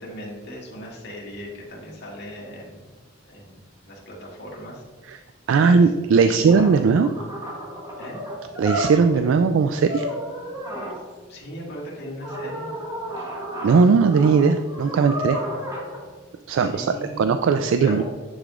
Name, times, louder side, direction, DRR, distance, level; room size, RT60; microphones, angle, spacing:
voice 1, 0.0-2.9 3.3-4.8 5.6-5.9 6.2-6.5 8.0-8.2 11.3-12.7 16.5-17.4 17.8-18.0, equal, 55° left, -3 dB, 1.9 m, -38 dB
voice 2, 5.5-7.1 8.6-10.0 13.6-15.4 16.5-18.0, right 5 dB, 70° right, 8 dB, 0.3 m, -18 dB
sound 1, 6.5-9.2 9.8-11.0 12.2-16.0, equal, 20° right, 1.8 m, -32 dB
10.0 x 5.0 x 2.5 m, 1.4 s
head